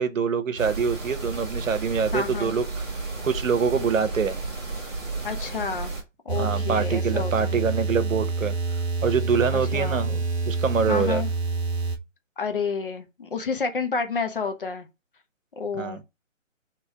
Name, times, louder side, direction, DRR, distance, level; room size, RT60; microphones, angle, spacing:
voice 1, 0.0-2.9 3.2-4.4 6.3-8.6 9.0-11.2 15.7-16.0, right 6 dB, 80° right, 0.9 m, -25 dB
sound 1, 0.6-6.0, right 3 dB, 20° right, 1.0 m, -33 dB
voice 2, 2.1-2.6 5.2-5.9 6.3-7.6 9.5-10.1 10.9-11.3 12.4-14.9 15.6-16.0, left 5 dB, 45° left, 0.7 m, -30 dB
sound 2, 6.3-12.0, right 3 dB, 55° right, 1.0 m, -27 dB
3.3 x 3.0 x 4.4 m
hypercardioid pair, 160°, 39 cm